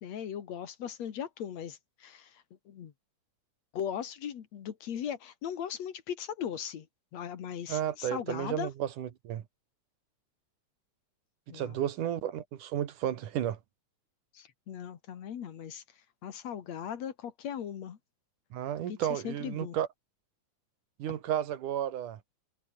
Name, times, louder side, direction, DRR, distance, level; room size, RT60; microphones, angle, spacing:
voice 1, 0.0-2.3 2.7-2.9 3.7-6.9 7.1-8.7 11.5-11.8 14.3-15.8 16.2-18.0 18.9-19.8, left 9 dB, 60° left, 2.8 m, -38 dB
voice 2, 7.7-9.4 11.5-13.6 18.5-19.9 21.0-22.2, right 11 dB, 85° right, 3.2 m, -33 dB
omnidirectional pair, 3.5 m